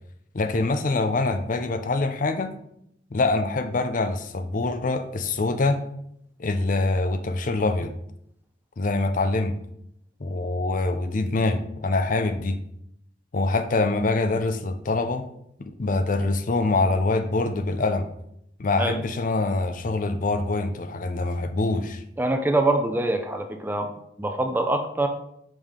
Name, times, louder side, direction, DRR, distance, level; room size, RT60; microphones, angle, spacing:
voice 1, 0.3-2.5 3.1-5.8 6.4-7.9 8.8-9.5 10.2-12.6 13.3-15.2 15.6-18.1 18.6-22.0, left 2 dB, 45° left, 9 dB, 0.5 m, -24 dB
voice 2, 22.2-23.9 24.2-25.1, right 2 dB, 10° right, 6 dB, 0.5 m, -24 dB
5.6 x 5.0 x 3.6 m, 0.75 s
head